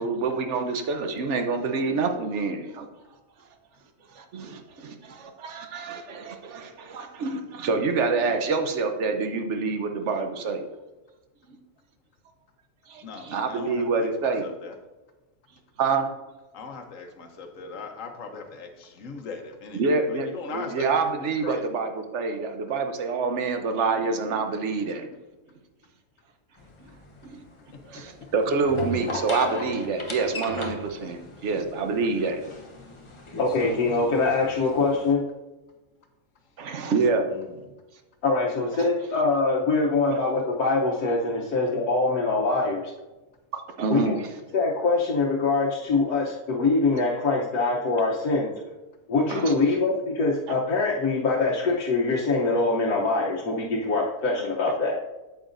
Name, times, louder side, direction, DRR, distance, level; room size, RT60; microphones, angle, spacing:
voice 1, 0.0-2.9 4.1-10.6 11.5-11.6 12.9-14.4 15.8-16.1 19.8-25.1 27.2-27.4 27.9-32.4 36.6-37.3 38.7-38.8 40.1-40.2 43.5-44.3 49.3-49.5, right 4 dB, 55° right, 6 dB, 1.0 m, -27 dB
voice 2, 13.0-14.7 16.5-19.8 20.1-20.9 21.4-21.6 27.7-28.0 37.3-37.7, left 4 dB, 60° left, 5 dB, 1.3 m, -40 dB
sound 1, 26.6-35.1, left 2 dB, 30° left, 0.6 m, -37 dB
voice 3, 33.4-35.2 38.2-42.9 43.9-44.1 44.5-48.6 49.1-54.9, left 3 dB, 75° left, -3 dB, 1.4 m, -24 dB
8.8 x 8.0 x 2.6 m, 1.1 s
omnidirectional pair, 1.6 m